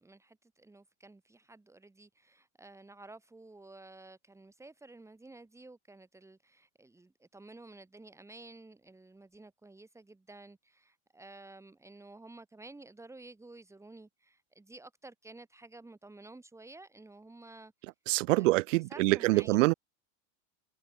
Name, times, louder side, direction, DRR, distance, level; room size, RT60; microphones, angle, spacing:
voice 1, 0.0-17.7 18.3-19.7, right 2 dB, 5° right, 6.5 m, -52 dB
voice 2, 18.1-19.7, right 21 dB, 75° right, 1.5 m, -25 dB
supercardioid pair, 140°, 39 cm